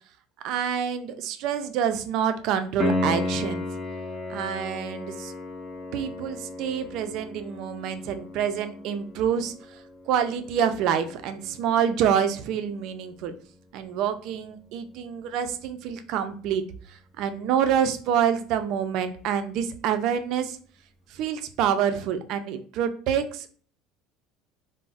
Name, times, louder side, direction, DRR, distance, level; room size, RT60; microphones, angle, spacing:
voice 1, 0.4-3.6 4.3-5.3 5.9-9.8 10.1-13.3 13.7-16.6 16.9-20.6 21.1-23.5, right 8 dB, 55° right, 9 dB, 0.4 m, -27 dB
Piano, 2.8-13.5 16.8-16.9, left 2 dB, 20° left, 0.4 m, -34 dB
2.4 x 2.0 x 3.9 m, 0.44 s
cardioid pair, 155°, 0 cm